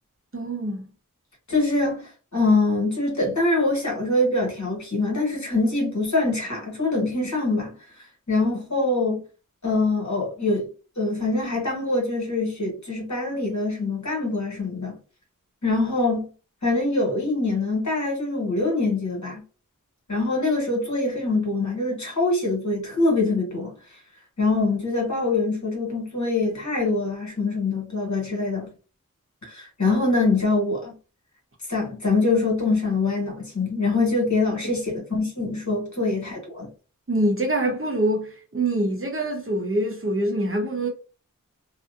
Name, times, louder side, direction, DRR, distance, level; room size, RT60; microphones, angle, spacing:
voice 1, 0.3-0.9 37.1-40.9, right 1 dB, 40° right, 0.7 m, -25 dB
voice 2, 1.5-7.7 8.3-9.2 9.6-10.7 11.0-15.0 15.6-16.3 16.6-19.4 20.1-23.7 24.4-28.7 29.4-30.9 31.7-36.7, left 3 dB, 55° left, 1.3 m, -24 dB
2.6 x 2.1 x 2.3 m
wide cardioid pair, 50°, 33 cm